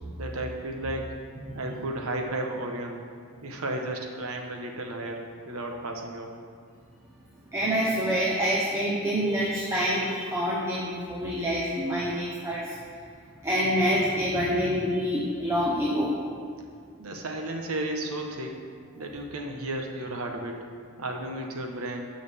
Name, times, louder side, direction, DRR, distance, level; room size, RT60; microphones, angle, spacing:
voice 1, 0.2-1.1 1.5-3.1 3.4-6.3 17.0-18.6 19.0-20.7 21.0-22.1, right 1 dB, 80° right, 2 dB, 1.2 m, -33 dB
voice 2, 7.5-12.8 13.4-16.2, equal, 10° right, -5 dB, 1.0 m, -26 dB
16.0 x 6.4 x 3.6 m, 2.2 s
head